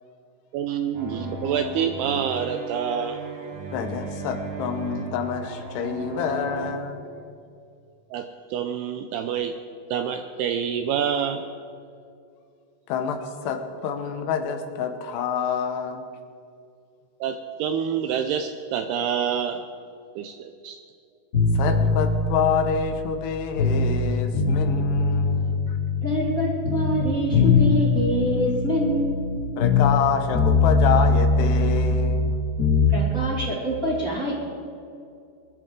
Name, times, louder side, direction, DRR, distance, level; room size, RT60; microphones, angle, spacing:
voice 1, 0.5-3.2 8.1-9.5 9.9-11.4 17.2-19.6 20.2-20.8, right 8 dB, 85° right, 7 dB, 2.3 m, -27 dB
sound 1, 0.9-6.7, right 2 dB, 65° right, 3.8 m, -35 dB
voice 2, 3.7-7.0 12.9-16.1 21.5-25.8 29.6-32.4, left 6 dB, 75° left, 6 dB, 2.9 m, -27 dB
sound 2, 21.3-24.0 24.3-26.4 26.6-30.1 30.3-33.0, left 4 dB, 35° left, 1.5 m, -21 dB
voice 3, 26.0-29.2 32.9-34.3, equal, 30° right, -5 dB, 1.8 m, -25 dB
22.5 x 12.0 x 3.8 m, 2.5 s
omnidirectional pair, 5.2 m